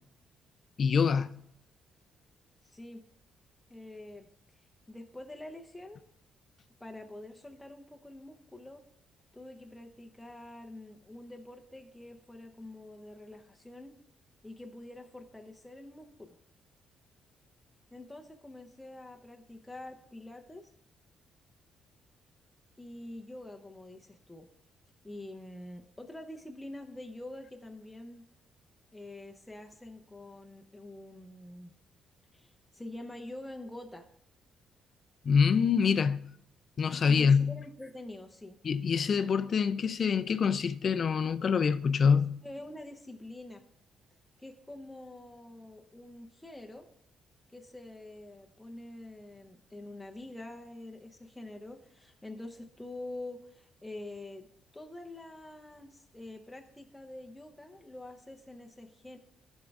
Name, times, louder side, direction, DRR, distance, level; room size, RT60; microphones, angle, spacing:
voice 1, 0.8-1.4 35.2-36.3 36.8-37.6 38.6-42.4, left 6 dB, 50° left, 0.4 m, -25 dB
voice 2, 2.6-3.0 3.7-4.3 4.9-6.0 6.8-8.8 9.3-13.9 14.4-16.4 17.9-20.7 22.8-24.5 25.0-28.2 28.9-31.7 32.3-34.1 37.1-38.6 42.1-43.6 44.4-46.9 47.5-54.5 54.7-59.2, left 1 dB, 10° left, 0.6 m, -46 dB
11.5 x 5.2 x 2.4 m
cardioid pair, 90°, 0 cm